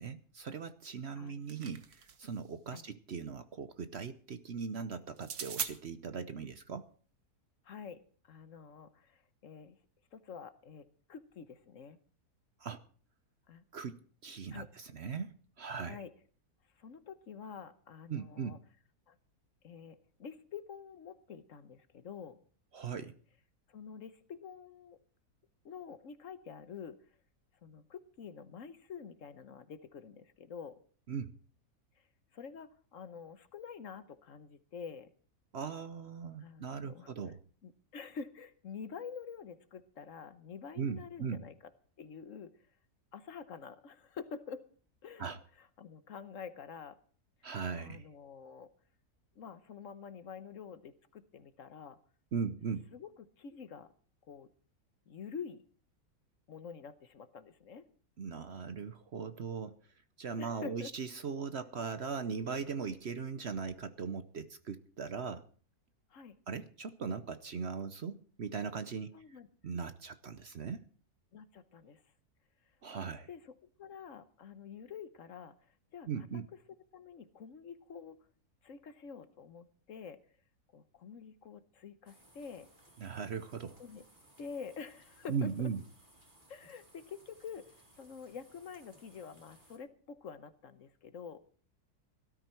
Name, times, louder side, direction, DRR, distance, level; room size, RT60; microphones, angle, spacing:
voice 1, 0.0-6.9 12.6-12.8 13.7-16.0 18.1-18.6 22.7-23.1 31.1-31.3 35.5-37.4 40.8-41.4 45.2-45.4 47.4-48.1 52.3-52.9 58.2-59.8 60.2-65.4 66.5-69.2 69.6-70.9 72.8-73.3 76.1-76.5 83.0-83.8 85.3-85.8, right 6 dB, 50° right, 12 dB, 0.9 m, -39 dB
voice 2, 1.1-1.4 2.7-2.8 7.6-9.8 10.1-12.0 13.5-13.6 14.5-14.7 15.8-16.1 16.8-18.6 19.1-19.2 19.6-22.4 23.7-25.0 25.6-27.0 27.6-30.8 32.0-32.1 32.3-35.1 36.4-37.1 37.6-41.5 42.0-42.6 43.1-44.7 45.0-47.0 47.7-48.7 49.3-52.0 52.9-53.9 54.2-54.5 55.1-55.6 56.5-57.8 60.4-60.9 66.1-66.4 69.1-69.5 71.3-72.0 73.0-76.3 76.5-76.6 76.9-78.2 78.6-80.2 80.7-82.7 83.8-84.0 84.4-85.7 86.5-91.4, left 6 dB, 60° left, 13 dB, 1.3 m, -48 dB
sound 1, 1.1-2.4 5.2-5.7, right 7 dB, 75° right, 1.8 m, -40 dB
sound 2, 82.1-89.8, right 1 dB, 30° right, 3.9 m, -63 dB
17.5 x 13.0 x 4.4 m, 0.43 s
omnidirectional pair, 1.6 m